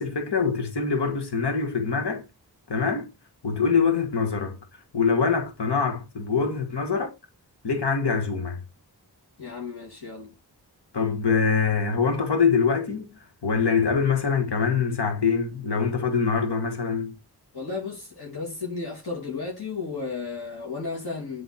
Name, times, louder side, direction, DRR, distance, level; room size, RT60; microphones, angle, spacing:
voice 1, 0.0-2.2 2.7-3.1 3.4-4.6 4.9-7.1 7.6-8.6 10.9-13.1 13.4-17.1, left 5 dB, 85° left, 1.5 m, -24 dB
voice 2, 9.4-10.3 17.5-21.4, left 4 dB, 65° left, 2.6 m, -33 dB
7.8 x 3.6 x 4.1 m
wide cardioid pair, 45°, 40 cm